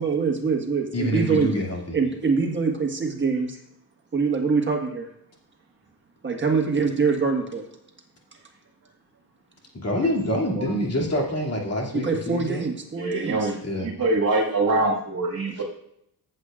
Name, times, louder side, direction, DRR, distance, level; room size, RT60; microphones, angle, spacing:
voice 1, 0.0-1.5 1.9-3.6 4.1-5.1 6.2-7.6 11.9-13.5, right 5 dB, 30° right, 2 dB, 1.6 m, -24 dB
voice 2, 0.9-2.0 9.7-12.6 13.6-13.9 15.6-15.7, left 1 dB, 40° left, -2 dB, 2.6 m, -26 dB
voice 3, 13.0-15.6, right 2 dB, 50° right, -1 dB, 1.9 m, -24 dB
14.5 x 8.0 x 2.5 m, 0.74 s
wide cardioid pair, 150°, 39 cm